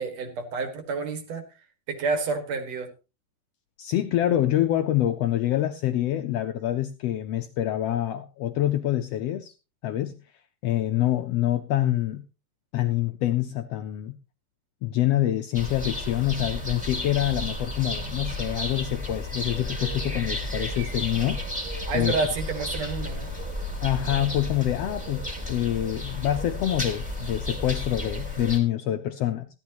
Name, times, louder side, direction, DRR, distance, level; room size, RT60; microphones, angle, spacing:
voice 1, 0.0-1.4 1.9-2.9 21.9-23.3, right 4 dB, 55° right, 7 dB, 2.8 m, -29 dB
voice 2, 3.8-9.5 9.8-10.2 10.6-12.2 12.7-14.2 14.8-21.4 21.9-22.2 23.8-29.5, left 13 dB, 85° left, 8 dB, 1.4 m, -26 dB
sound 1, 15.5-28.6, left 1 dB, ahead, 2.5 m, -32 dB
15.5 x 12.0 x 2.9 m, 0.30 s
omnidirectional pair, 3.7 m